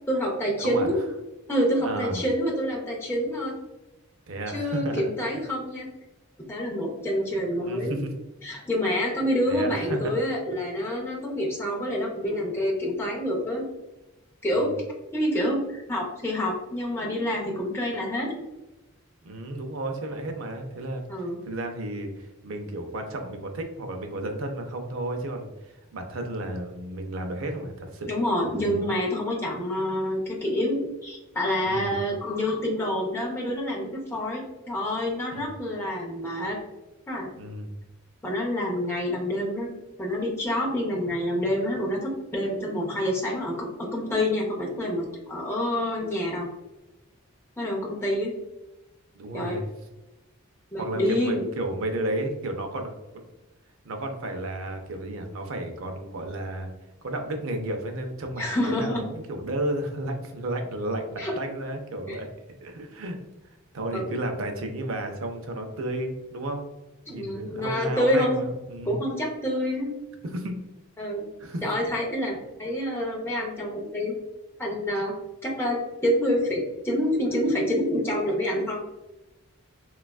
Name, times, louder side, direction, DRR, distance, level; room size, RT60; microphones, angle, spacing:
voice 1, 0.1-1.1 1.5-3.6 4.5-5.9 6.5-8.0 8.4-13.7 14.4-14.7 15.1-18.4 21.1-21.4 28.1-36.6 37.1-37.3 38.2-39.7 40.0-46.5 47.6-48.3 49.3-49.6 50.7-51.4 58.4-59.0 61.2-61.3 62.1-62.2 63.9-64.1 67.1-68.4 68.9-69.9 71.0-71.3 71.6-74.1 74.6-75.1 75.4-78.8, equal, 10° left, -3 dB, 0.5 m, -27 dB
voice 2, 0.6-0.9 1.8-2.3 4.3-5.1 7.6-8.1 9.5-10.1 14.5-14.7 19.2-21.0 21.5-28.1 28.4-28.9 31.6-32.0 35.3-35.5 37.4-37.7 49.1-49.6 50.8-53.3 53.8-56.7 57.0-62.3 62.6-63.2 63.7-66.6 67.1-69.0 70.2-70.6 71.4-71.6, right 1 dB, 65° right, 5 dB, 0.4 m, -32 dB
3.2 x 2.3 x 2.2 m, 1.0 s
head